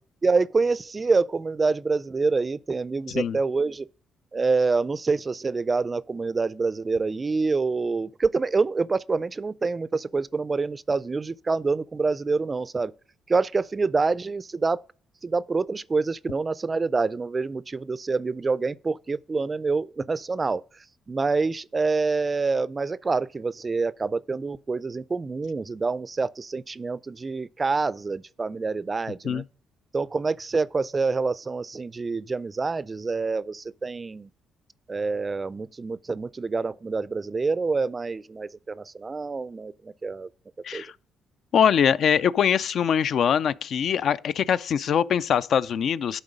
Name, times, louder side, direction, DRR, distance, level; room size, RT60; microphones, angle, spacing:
voice 1, 0.2-3.9 4.3-12.9 13.3-14.8 15.2-20.6 21.1-29.4 29.9-34.3 34.9-40.3 40.7-40.8, right 4 dB, 30° right, 0.3 m, -26 dB
voice 2, 41.5-46.2, left 8 dB, 65° left, 0.3 m, -23 dB
10.5 x 4.0 x 5.1 m
cardioid pair, 90°, 0 cm